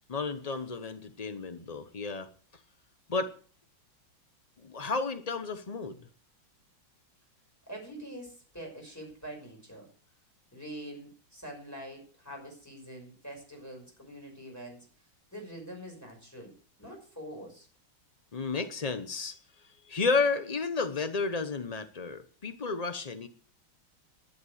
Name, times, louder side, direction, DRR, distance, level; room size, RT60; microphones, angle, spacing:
voice 1, 0.1-2.3 3.1-3.3 4.6-6.0 18.3-19.4 19.8-23.3, left 4 dB, 80° left, 10 dB, 0.3 m, -32 dB
voice 2, 7.7-9.9 10.5-14.9 15.3-16.5 16.8-17.7, right 1 dB, 5° left, 0 dB, 5.6 m, -44 dB
11.0 x 10.5 x 6.4 m, 0.42 s
omnidirectional pair, 2.2 m